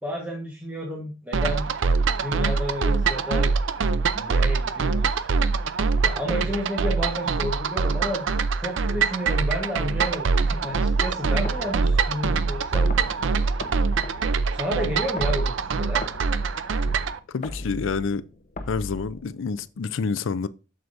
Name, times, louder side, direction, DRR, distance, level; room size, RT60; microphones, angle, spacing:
voice 1, 0.0-1.6 2.2-3.5 4.1-5.3 6.0-8.2 8.6-13.5 14.5-16.1, equal, 5° right, 1.2 m, -31 dB
sound 1, 1.3-17.2, right 4 dB, 70° right, 0.5 m, -24 dB
sound 2, 10.6-19.7, left 1 dB, 40° left, 0.9 m, -40 dB
voice 2, 17.3-18.2 18.7-20.5, left 5 dB, 75° left, 0.5 m, -28 dB
7.8 x 6.8 x 2.6 m
head